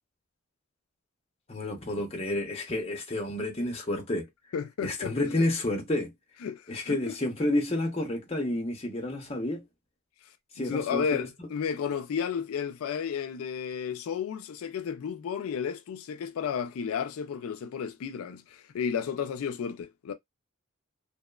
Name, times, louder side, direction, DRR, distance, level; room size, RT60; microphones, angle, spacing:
voice 1, 1.5-4.3 4.8-6.1 6.7-9.7 10.5-11.5, left 1 dB, 30° left, 0.7 m, -30 dB
voice 2, 4.5-5.4 6.4-7.1 10.6-20.1, left 7 dB, 85° left, 0.3 m, -33 dB
2.9 x 2.0 x 2.2 m
head